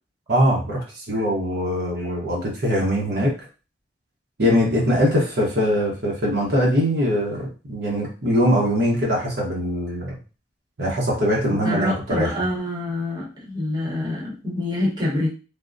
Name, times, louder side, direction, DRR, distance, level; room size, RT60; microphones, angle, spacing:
voice 1, 0.3-3.3 4.4-10.2 10.8-12.3, equal, 60° right, -3 dB, 0.9 m, -22 dB
voice 2, 11.5-15.3, left 1 dB, 25° right, -4 dB, 0.9 m, -26 dB
3.4 x 2.1 x 2.5 m, 0.33 s
head